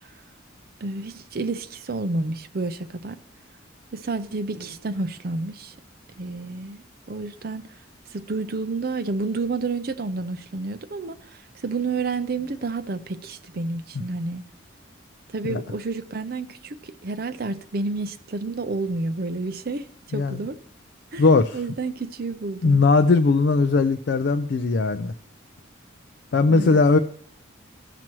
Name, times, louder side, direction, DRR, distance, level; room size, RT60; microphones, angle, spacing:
voice 1, 0.8-3.2 3.9-5.7 6.2-7.7 8.1-14.5 15.3-20.6 21.1-22.8 26.5-26.8, right 3 dB, 50° right, 0.6 m, -30 dB
voice 2, 21.2-21.6 22.6-25.1 26.3-27.0, left 3 dB, 55° left, 0.4 m, -19 dB
15.5 x 6.0 x 3.0 m
head